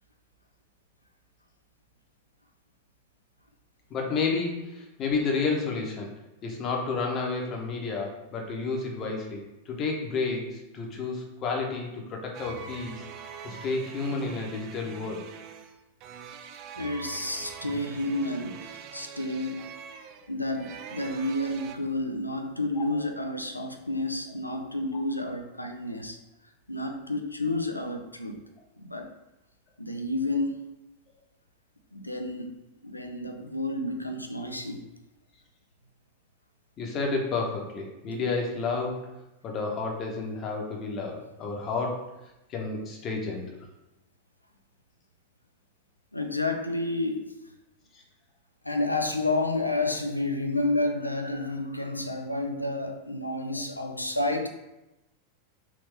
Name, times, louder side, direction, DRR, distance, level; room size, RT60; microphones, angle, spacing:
voice 1, 3.9-6.1 6.4-9.4 9.7-13.1 13.4-15.2 22.8-22.9 36.8-39.0 39.4-42.0 42.5-43.4 47.9-48.0 53.5-53.6, left 4 dB, 30° left, 0 dB, 0.9 m, -31 dB
sound 1, 12.3-21.8, right 7 dB, 40° right, 0.3 m, -44 dB
voice 2, 16.7-19.7 20.3-26.2 26.7-28.4 28.8-29.1 29.8-30.6 31.9-32.5 32.8-34.8 46.1-47.3 48.6-54.5, left 2 dB, 85° left, 5 dB, 0.4 m, -30 dB
3.5 x 3.0 x 3.3 m, 0.95 s
figure-of-eight pair, 90°, 0 cm